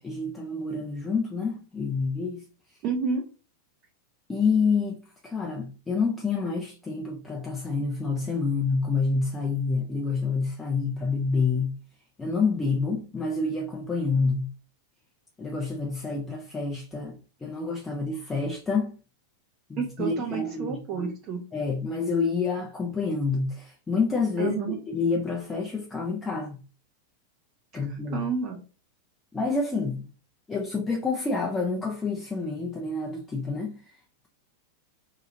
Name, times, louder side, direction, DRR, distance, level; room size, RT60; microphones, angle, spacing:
voice 1, 0.0-2.4 4.3-11.8 12.2-14.5 15.4-19.0 19.7-21.1 21.5-24.6 24.9-26.6 27.7-28.2 29.3-30.1 30.5-33.8, left 4 dB, 15° left, 0.5 m, -28 dB
voice 2, 2.8-3.2 19.8-21.4 24.4-24.8 27.9-28.6, right 5 dB, 40° right, 0.5 m, -30 dB
2.8 x 2.3 x 2.7 m
figure-of-eight pair, 90°, 0 cm